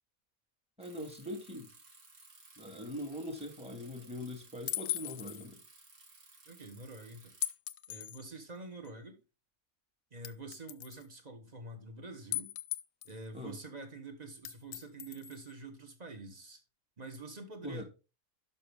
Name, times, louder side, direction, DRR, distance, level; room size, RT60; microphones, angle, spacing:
voice 1, 0.8-1.7 2.6-5.6 13.3-13.6 17.6-17.8, left 1 dB, 5° right, 1.8 m, -42 dB
Bicycle, 0.8-7.5, right 3 dB, 90° right, 2.2 m, -58 dB
sound 1, 4.7-5.5 7.4-8.2 8.8-8.9 10.2-11.0 12.3-13.2 14.4-15.5, left 14 dB, 70° left, 0.9 m, -38 dB
voice 2, 6.5-7.3 7.9-9.2 10.1-12.5 13.0-16.6 17.0-17.8, right 3 dB, 30° right, 1.5 m, -47 dB
11.5 x 5.8 x 3.5 m
omnidirectional pair, 1.5 m